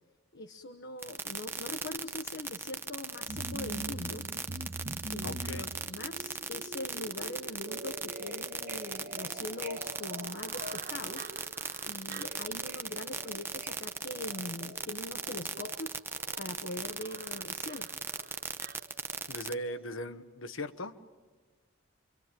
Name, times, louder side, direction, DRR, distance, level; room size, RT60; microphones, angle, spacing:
voice 1, 0.3-4.3 5.1-11.3 11.9-16.0 16.4-17.9, left 2 dB, 60° left, 7 dB, 1.0 m, -42 dB
sound 1, 1.0-19.5, right 4 dB, 10° right, 0.8 m, -37 dB
sound 2, 3.3-19.4 19.7-19.8, right 2 dB, 50° right, 1.2 m, -45 dB
voice 2, 5.2-5.7 19.3-20.9, left 1 dB, 85° left, 12 dB, 1.2 m, -38 dB
26.5 x 24.0 x 9.1 m, 1.3 s
head